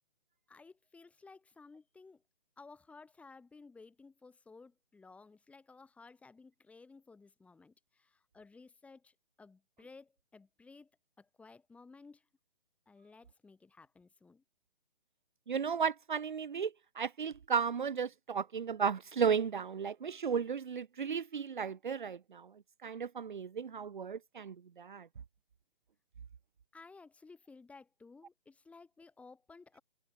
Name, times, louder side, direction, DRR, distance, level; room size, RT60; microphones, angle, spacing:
voice 1, 0.5-2.2 2.6-10.9 11.2-12.3 12.9-14.4 26.7-29.8, left 4 dB, 5° left, 4.1 m, -56 dB
voice 2, 15.5-22.5 22.8-25.1, right 6 dB, 50° right, 1.6 m, -34 dB
figure-of-eight pair, 145°, 30 cm